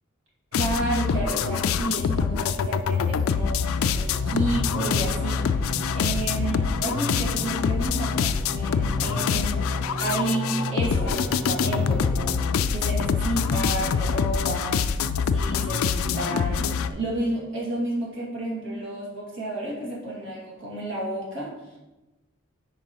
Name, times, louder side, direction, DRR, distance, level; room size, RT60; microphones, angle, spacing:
sound 1, 0.5-16.9, left 6 dB, 80° left, 0.3 m, -25 dB
voice 1, 0.6-14.8 15.3-21.5, right 1 dB, 60° right, -5 dB, 2.2 m, -31 dB
sound 2, 3.4-14.4, right 2 dB, ahead, 0.8 m, -36 dB
9.1 x 4.6 x 3.0 m, 1.0 s
head